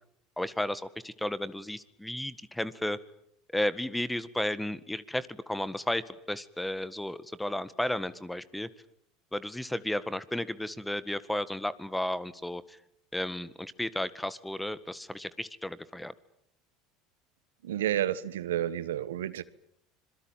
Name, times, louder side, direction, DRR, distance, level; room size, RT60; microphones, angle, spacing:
voice 1, 0.4-3.0 3.5-8.7 9.3-12.8 13.1-16.1, left 1 dB, 5° left, 16 dB, 1.8 m, -33 dB
voice 2, 17.6-19.4, right 12 dB, 80° right, 16 dB, 1.2 m, -30 dB
26.0 x 22.5 x 9.1 m, 0.72 s
hypercardioid pair, 80°, 0 cm